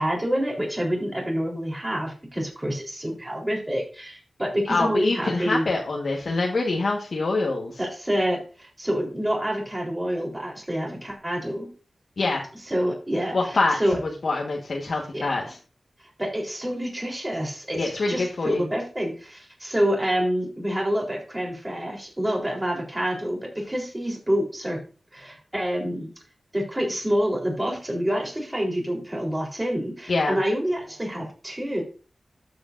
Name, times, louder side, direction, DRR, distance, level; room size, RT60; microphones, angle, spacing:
voice 1, 0.0-5.7 7.8-11.7 12.7-13.4 13.8-14.0 15.1-15.4 16.2-24.8 25.1-26.1 26.5-31.8, equal, 20° right, 0 dB, 3.7 m, -27 dB
voice 2, 4.7-7.8 12.2-12.4 13.3-15.6 17.7-18.6 30.1-30.4, left 3 dB, 70° left, -1 dB, 1.4 m, -25 dB
12.5 x 7.9 x 2.6 m, 0.36 s
wide cardioid pair, 80°, 0 cm